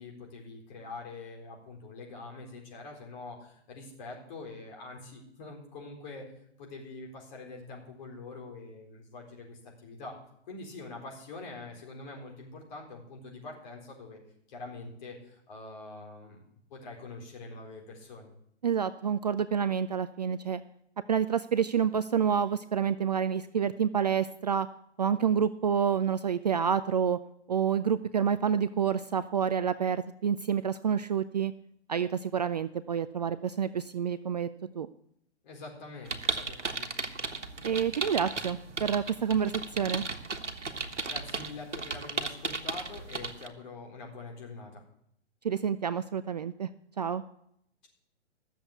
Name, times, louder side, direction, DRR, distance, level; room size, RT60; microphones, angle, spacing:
voice 1, 0.0-6.3 6.6-10.2 10.5-14.2 14.5-16.4 16.7-18.3 35.4-36.9 41.0-44.8, left 3 dB, 40° left, 0 dB, 4.1 m, -44 dB
voice 2, 18.6-20.6 21.1-24.7 25.0-27.2 27.5-31.5 31.9-34.5 34.8-34.9 37.6-40.1 45.4-46.7 47.0-47.2, right 7 dB, 40° right, 13 dB, 0.4 m, -28 dB
sound 1, 36.1-43.5, right 3 dB, 85° right, 1.4 m, -35 dB
sound 2, 36.8-42.1, right 3 dB, 10° left, 4.1 m, -54 dB
13.5 x 7.3 x 8.2 m, 0.72 s
figure-of-eight pair, 130°, 35 cm